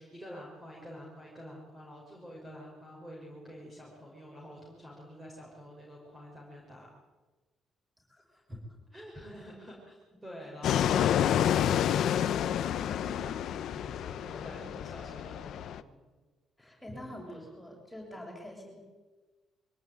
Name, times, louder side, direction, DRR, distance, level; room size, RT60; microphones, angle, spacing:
voice 1, 0.0-6.9 8.3-8.6 8.9-16.1 16.6-17.0 18.2-18.4, equal, 10° right, -2 dB, 5.6 m, -48 dB
voice 2, 8.1-8.4 9.3-9.4 10.4-10.5 14.3-14.8 16.6-18.8, left 1 dB, 5° left, -1 dB, 7.5 m, -47 dB
Fixed-wing aircraft airplane, 10.6-15.8, left 10 dB, 60° left, 0.9 m, -29 dB
24.0 x 17.5 x 9.5 m, 1.2 s
cardioid pair, 170°, 0 cm